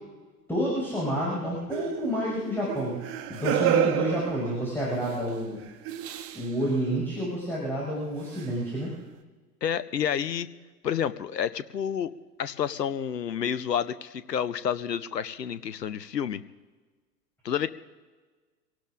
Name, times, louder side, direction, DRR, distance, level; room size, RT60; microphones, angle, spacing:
voice 1, 0.5-3.0 3.3-5.6 6.3-8.9, equal, 5° left, -6 dB, 5.7 m, -29 dB
sound 1, 1.7-5.1 5.9-6.5 8.4-8.5, right 11 dB, 30° right, 1.0 m, -30 dB
voice 2, 9.6-10.5 10.8-12.1 12.4-16.4 17.4-17.7, left 8 dB, 80° left, 14 dB, 0.8 m, -29 dB
25.5 x 17.5 x 2.5 m, 1.3 s
figure-of-eight pair, 95°, 49 cm